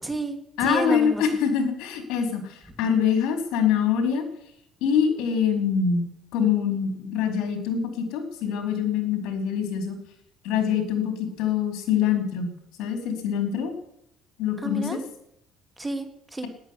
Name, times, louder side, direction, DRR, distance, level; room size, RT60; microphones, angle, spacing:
voice 1, 0.0-1.2 14.6-15.0 15.8-16.5, right 2 dB, 10° right, 8 dB, 2.3 m, -31 dB
voice 2, 0.6-4.2 4.8-10.0 10.4-12.5 12.8-13.7 14.4-15.0, left 7 dB, 80° left, 6 dB, 4.4 m, -24 dB
13.5 x 11.0 x 9.9 m, 0.77 s
cardioid pair, 115°, 0 cm